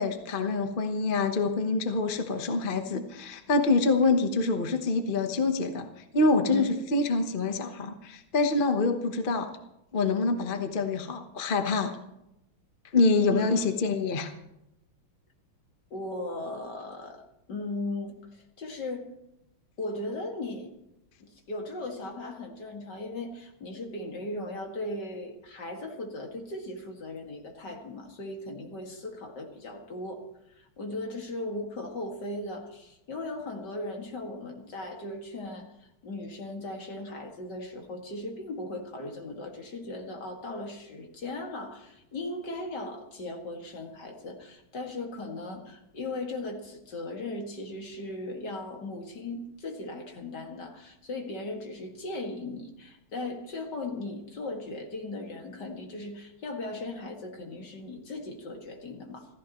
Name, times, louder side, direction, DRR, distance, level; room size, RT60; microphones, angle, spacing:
voice 1, 0.0-5.9 6.1-9.5 9.9-11.9 12.9-14.3, left 3 dB, 35° left, 6 dB, 0.9 m, -26 dB
voice 2, 15.9-17.2 17.5-18.1 18.6-19.1 19.8-20.7 21.2-30.2 30.5-59.3, left 2 dB, 55° left, 2 dB, 2.6 m, -37 dB
27.0 x 14.5 x 3.1 m, 0.86 s
omnidirectional pair, 2.3 m